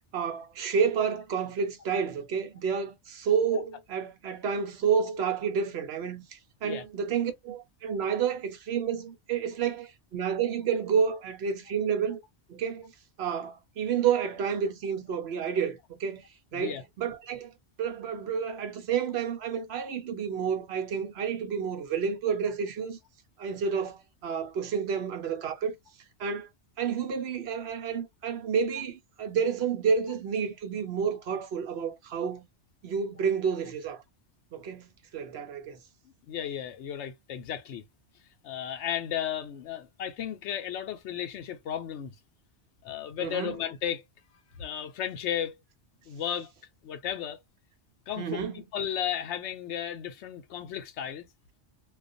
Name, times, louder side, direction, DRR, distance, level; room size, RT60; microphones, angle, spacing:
voice 1, 0.1-12.2 12.5-12.9 13.2-16.2 16.5-17.5 17.8-23.0 23.4-25.7 26.2-26.5 26.8-32.4 32.8-34.0 34.5-35.8 43.2-43.6 48.2-48.6, right 6 dB, 70° right, 1.0 m, -30 dB
voice 2, 36.3-37.8 38.4-42.1 42.8-44.0 44.6-45.6 46.0-46.5 46.8-47.4 48.1-48.5 48.7-51.3, left 9 dB, 85° left, 0.9 m, -34 dB
2.4 x 2.3 x 2.5 m
omnidirectional pair, 1.2 m